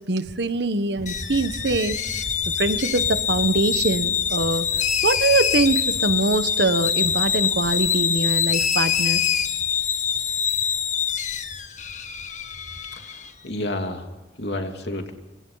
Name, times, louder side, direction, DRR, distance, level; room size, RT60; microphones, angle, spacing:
voice 1, 0.0-2.0 2.6-4.7 5.0-9.2, right 2 dB, 70° right, 11 dB, 1.3 m, -23 dB
sound 1, 1.0-13.0, left 1 dB, 20° left, 1.1 m, -41 dB
sound 2, 1.1-13.3, left 8 dB, 45° left, 1.4 m, -25 dB
voice 2, 12.9-14.1 14.4-15.1, left 1 dB, 70° left, 4 dB, 3.0 m, -30 dB
26.5 x 26.0 x 4.1 m, 1.1 s
head